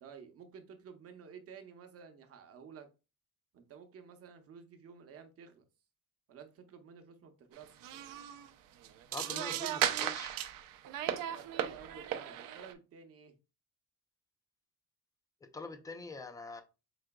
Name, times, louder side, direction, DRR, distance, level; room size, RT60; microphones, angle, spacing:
voice 1, 0.0-2.9 3.5-5.6 6.3-7.9 11.3-13.3, right 6 dB, 45° right, 0.7 m, -52 dB
sound 1, 7.6-7.7 7.8-8.5 8.8-12.7, right 11 dB, 75° right, 0.6 m, -36 dB
voice 2, 9.1-10.4 15.5-16.6, left 3 dB, 10° left, 0.3 m, -44 dB
4.9 x 3.7 x 2.2 m
cardioid pair, 175°, 34 cm